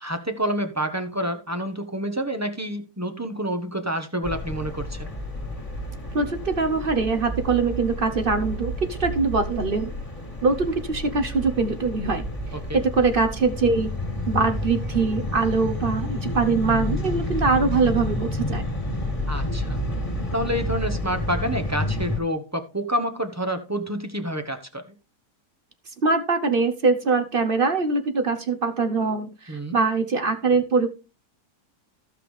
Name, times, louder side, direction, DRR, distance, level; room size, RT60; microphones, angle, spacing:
voice 1, 0.0-5.1 12.7-12.8 19.3-19.8 20.3-24.8 29.5-29.8, equal, 15° right, 7 dB, 0.8 m, -28 dB
sound 1, 4.2-22.2, left 1 dB, 20° left, 2.4 m, -30 dB
voice 2, 6.1-9.9 10.4-12.3 12.7-13.9 14.3-18.6 26.0-30.9, right 4 dB, 40° right, 8 dB, 0.9 m, -23 dB
14.5 x 5.9 x 3.2 m, 0.31 s
omnidirectional pair, 1.7 m